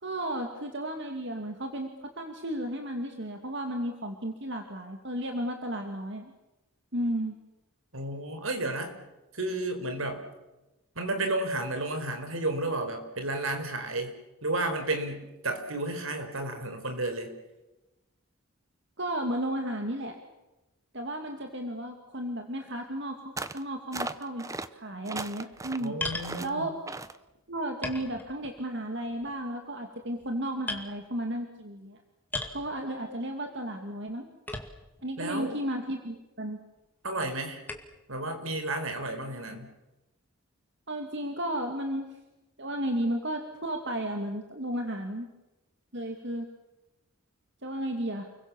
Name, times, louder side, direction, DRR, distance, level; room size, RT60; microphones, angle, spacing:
voice 1, 0.0-6.3 6.9-7.4 19.0-20.2 20.9-25.9 26.4-26.7 27.5-32.0 32.5-34.3 35.0-36.6 40.9-42.1 42.6-45.3 45.9-46.5 47.6-48.3, right 1 dB, 55° right, 4 dB, 2.5 m, -33 dB
voice 2, 7.9-8.9 9.3-10.2 10.9-14.1 14.4-17.3 25.8-26.7 35.2-35.6 37.0-37.6 38.1-39.7, right 2 dB, 75° right, 6 dB, 4.7 m, -32 dB
sound 1, 23.4-23.6 23.9-24.7 25.0-25.9 26.2-26.5 26.9-27.2, right 3 dB, 15° right, 0.8 m, -37 dB
sound 2, 26.0-26.4 27.2-27.3 27.8-28.7 29.0-29.4 30.0-30.3 30.7-30.9 32.3-32.6 34.5-35.0 35.7-35.8 37.7-38.0, left 2 dB, 10° left, 2.2 m, -36 dB
29.5 x 22.5 x 7.2 m, 1.0 s
head